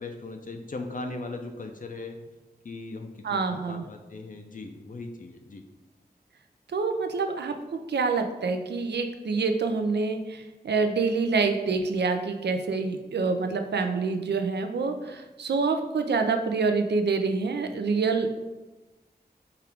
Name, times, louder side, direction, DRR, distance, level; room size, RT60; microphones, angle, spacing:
voice 1, 0.0-2.2 2.6-5.6, left 3 dB, 55° left, 4 dB, 0.4 m, -38 dB
voice 2, 3.2-3.9 6.7-7.5 7.9-18.4, right 4 dB, 90° right, 6 dB, 0.4 m, -26 dB
4.4 x 2.4 x 3.4 m, 1.1 s
wide cardioid pair, 50°, 17 cm